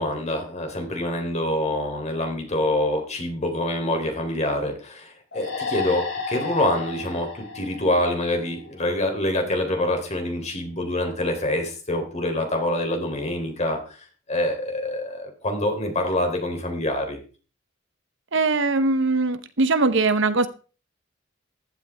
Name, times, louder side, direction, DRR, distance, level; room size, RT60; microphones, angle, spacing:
voice 1, 0.0-13.8 14.3-17.2, left 1 dB, 35° left, 4 dB, 3.5 m, -26 dB
sound 1, 5.3-8.8, left 4 dB, 65° left, 7.2 m, -33 dB
voice 2, 18.3-20.5, right 3 dB, 65° right, 11 dB, 1.1 m, -21 dB
15.0 x 12.0 x 3.5 m, 0.36 s
head